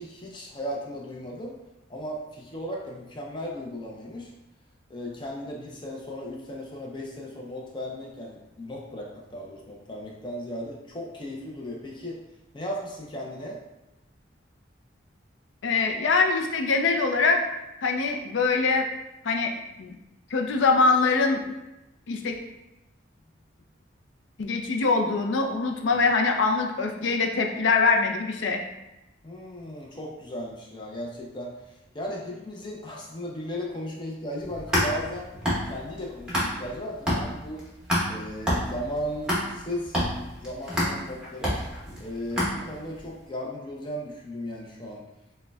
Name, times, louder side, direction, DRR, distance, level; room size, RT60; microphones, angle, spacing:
voice 1, 0.0-1.6 1.9-4.3 4.9-12.3 12.5-13.6 25.9-26.0 29.2-35.3 35.6-37.6 38.1-40.0 40.4-41.6 42.0-45.0, equal, 25° left, -2 dB, 0.5 m, -36 dB
voice 2, 15.6-17.4 17.8-18.9 19.2-19.5 19.8-20.0 20.3-21.4 22.1-22.4 24.4-28.6, left 4 dB, 70° left, 3 dB, 0.4 m, -23 dB
sound 1, 34.4-36.8 37.1-43.0, equal, 5° right, 0.9 m, -28 dB
6.2 x 2.2 x 2.3 m, 0.95 s
head